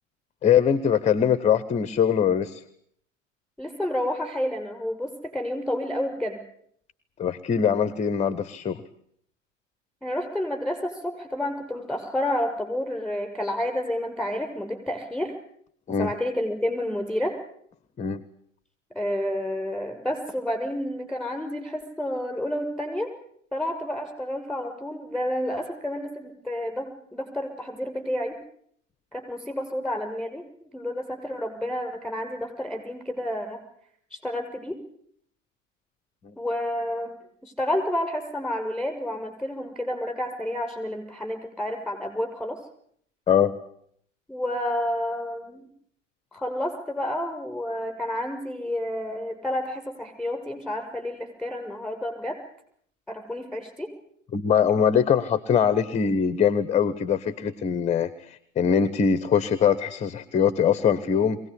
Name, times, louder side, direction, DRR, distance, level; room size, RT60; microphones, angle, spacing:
voice 1, 0.4-2.6 7.2-8.8 15.9-16.1 18.0-18.2 36.2-36.3 43.3-43.6 54.3-61.4, left 7 dB, 20° left, 15 dB, 1.0 m, -22 dB
voice 2, 3.6-6.4 10.0-15.3 15.9-17.4 18.9-23.1 23.5-28.4 29.1-33.6 34.1-34.8 36.4-37.1 37.4-42.6 44.3-45.7 46.3-52.4 53.1-53.9, left 1 dB, ahead, 4 dB, 6.6 m, -30 dB
23.0 x 18.0 x 9.9 m, 0.68 s
figure-of-eight pair, 90°, 38 cm